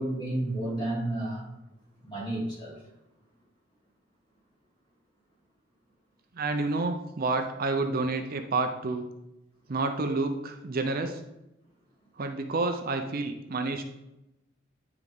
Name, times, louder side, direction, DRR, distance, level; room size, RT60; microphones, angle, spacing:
voice 1, 0.0-1.5 2.0-2.8, right 1 dB, 25° left, -5 dB, 2.9 m, -31 dB
voice 2, 6.3-9.1 9.7-11.2 12.2-13.8, right 3 dB, 50° right, 6 dB, 0.6 m, -29 dB
9.7 x 4.7 x 3.5 m, 0.91 s
head